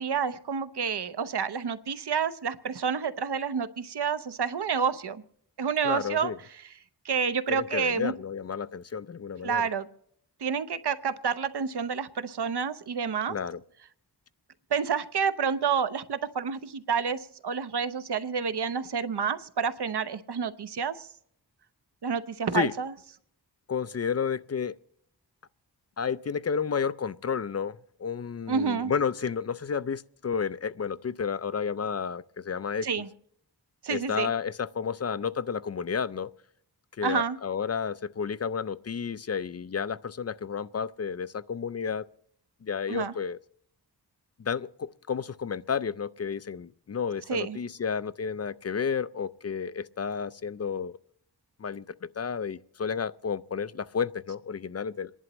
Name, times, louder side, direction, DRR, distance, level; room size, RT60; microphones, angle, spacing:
voice 1, 0.0-5.2 5.6-6.3 7.0-8.1 9.4-9.9 10.4-13.4 14.7-21.1 22.0-22.9 28.5-28.9 32.8-33.1 33.8-34.3 37.0-37.4 42.9-43.1 47.3-47.6, right 6 dB, 70° right, 0.8 m, -29 dB
voice 2, 5.8-6.4 7.5-9.7 13.3-13.6 22.5-22.7 23.7-24.8 26.0-33.0 33.9-36.3 37.0-42.0 42.6-43.4 44.4-51.0 51.6-55.1, left 6 dB, 40° left, 0.5 m, -31 dB
27.5 x 11.0 x 3.0 m
wide cardioid pair, 80°, 41 cm